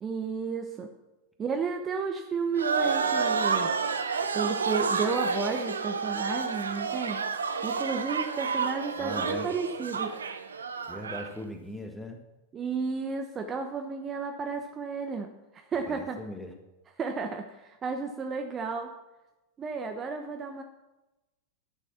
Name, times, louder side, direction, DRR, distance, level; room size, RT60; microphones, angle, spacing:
voice 1, 0.0-0.9 1.4-3.7 4.3-7.2 7.6-10.2 12.5-16.2 17.0-18.9 19.6-20.6, right 5 dB, 25° right, 5 dB, 0.8 m, -32 dB
sound 1, 2.6-11.3, right 5 dB, 70° right, 0.8 m, -30 dB
voice 2, 9.0-9.5 10.9-12.2 15.9-16.5, left 1 dB, 5° left, 4 dB, 1.6 m, -39 dB
11.5 x 6.7 x 5.9 m, 1.0 s
figure-of-eight pair, 90°, 0 cm